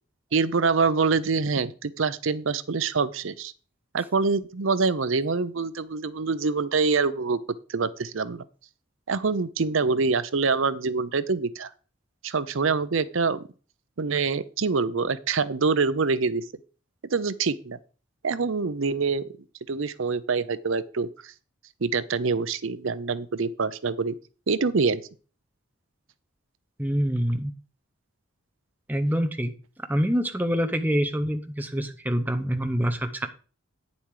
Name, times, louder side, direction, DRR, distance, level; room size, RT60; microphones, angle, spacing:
voice 1, 0.3-3.5 3.9-7.4 7.7-8.4 9.1-11.7 12.2-13.4 14.0-16.4 17.1-17.8 18.2-19.2 19.7-21.3 21.8-24.2 24.5-25.0, right 4 dB, 65° right, 0.6 m, -25 dB
voice 2, 26.8-27.5 28.9-29.5 29.9-33.3, equal, 10° right, 0.8 m, -25 dB
9.4 x 7.1 x 4.8 m
head